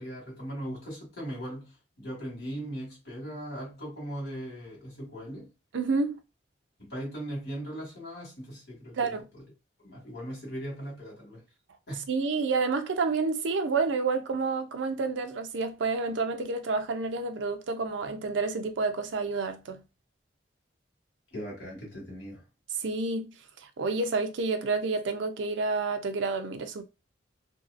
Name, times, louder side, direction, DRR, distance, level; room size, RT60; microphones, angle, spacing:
voice 1, 0.0-5.5 6.8-9.4 9.8-11.4 11.9-12.1 21.3-22.4, equal, 55° left, 1.8 m, -39 dB
voice 2, 5.7-6.2 9.0-9.2 12.1-19.8 22.8-23.3 23.8-26.8, right 4 dB, 75° right, 0.5 m, -29 dB
2.8 x 2.7 x 2.4 m
head